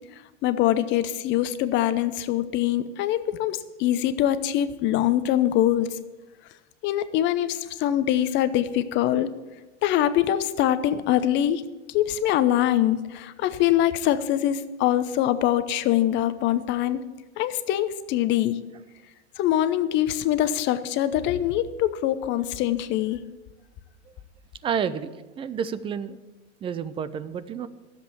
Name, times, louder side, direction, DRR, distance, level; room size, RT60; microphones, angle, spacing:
voice 1, 0.4-5.9 6.8-9.3 9.8-11.6 11.9-17.0 17.4-18.6 19.4-23.2, left 12 dB, 30° left, 13 dB, 0.8 m, -23 dB
voice 2, 24.6-26.2 26.6-27.7, right 7 dB, 15° right, 15 dB, 0.5 m, -30 dB
12.5 x 7.8 x 8.6 m, 1.2 s
hypercardioid pair, 125°, 35 cm